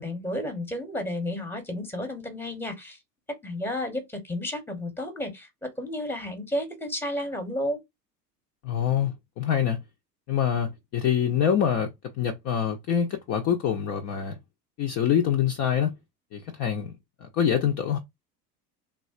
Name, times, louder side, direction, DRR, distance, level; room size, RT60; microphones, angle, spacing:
voice 1, 0.0-3.0 3.4-7.8, left 1 dB, 5° left, 0.9 m, -32 dB
voice 2, 8.6-9.8 10.3-11.9 12.2-14.4 14.8-15.9 16.3-16.9 17.2-18.0, left 8 dB, 35° left, 0.5 m, -25 dB
3.3 x 2.4 x 2.4 m
figure-of-eight pair, 75°, 50 cm